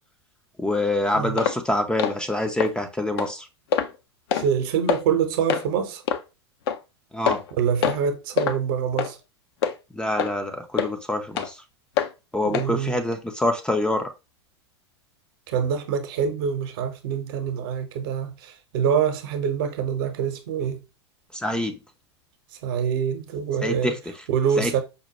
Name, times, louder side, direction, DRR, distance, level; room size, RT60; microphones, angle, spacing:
voice 1, 0.6-3.5 7.1-7.4 9.9-11.6 12.3-14.1 21.3-21.8 23.6-24.0 24.6-24.8, left 1 dB, 5° left, 0.4 m, -25 dB
sound 1, 1.4-1.6 2.0-2.2 2.6-2.7 3.2-3.3 3.7-3.9 4.3-4.5 4.9-5.0 5.5-5.6 6.1-6.2 6.7-6.8 7.3-7.5 7.8-8.0 8.4-8.6 9.0-9.1 9.6-9.7 10.2-10.3 10.8-10.9 11.4-11.5 12.0-12.1 12.5-12.7 13.1-13.2, left 8 dB, 60° left, 0.5 m, -24 dB
voice 2, 4.3-6.0 7.5-9.2 12.4-13.0 15.5-20.8 22.6-24.0 24.3-24.8, right 7 dB, 55° right, 0.8 m, -25 dB
5.2 x 2.1 x 2.9 m
hypercardioid pair, 95°, 15 cm